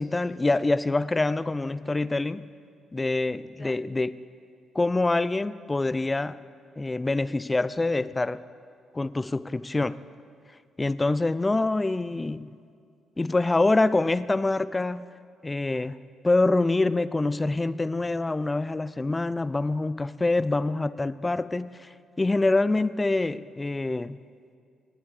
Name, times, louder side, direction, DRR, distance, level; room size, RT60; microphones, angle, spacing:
voice 1, 0.0-2.5 2.9-4.2 4.7-6.4 6.8-8.4 8.9-10.0 10.8-12.6 13.2-15.1 15.4-16.0 16.2-21.9 22.2-24.2, left 2 dB, 20° left, 17 dB, 0.4 m, -25 dB
19.5 x 7.7 x 4.8 m, 2.3 s
cardioid pair, 90°, 0 cm